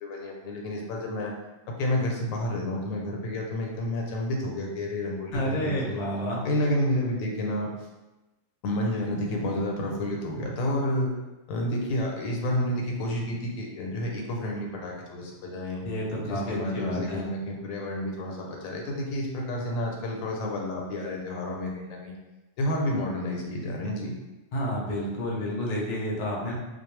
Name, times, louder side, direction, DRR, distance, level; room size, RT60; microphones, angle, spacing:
voice 1, 0.0-1.3 1.8-6.0 6.4-7.7 8.6-11.1 11.5-15.8 16.2-22.2 22.6-24.2, left 1 dB, 85° left, 0 dB, 1.0 m, -30 dB
voice 2, 5.3-6.4 15.8-17.2 24.5-26.5, equal, 60° left, -3 dB, 0.4 m, -30 dB
2.3 x 2.0 x 3.1 m, 1.1 s
omnidirectional pair, 1.4 m